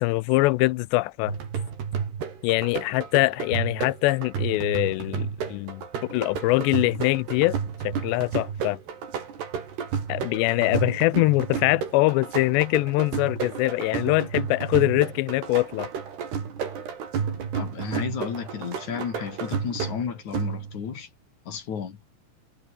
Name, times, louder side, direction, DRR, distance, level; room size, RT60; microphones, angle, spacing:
voice 1, 0.0-1.3 2.4-7.6 7.8-8.8 10.1-15.9, left 21 dB, 80° left, 2.7 m, -23 dB
sound 1, 1.3-20.9, right 7 dB, 65° right, 6.2 m, -32 dB
voice 2, 17.5-21.1 21.5-22.0, left 7 dB, 45° left, 3.7 m, -32 dB
omnidirectional pair, 5.2 m